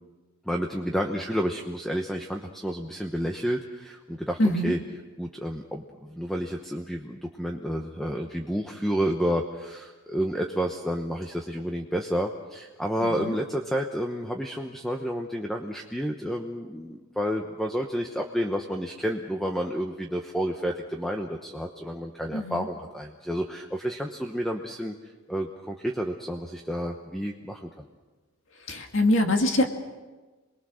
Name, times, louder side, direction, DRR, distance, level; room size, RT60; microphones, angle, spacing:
voice 1, 0.4-4.8 5.2-27.8, equal, ahead, 2 dB, 1.0 m, -30 dB
voice 2, 28.7-29.7, left 1 dB, 55° left, 4 dB, 2.4 m, -23 dB
28.0 x 21.5 x 6.5 m, 1.3 s
head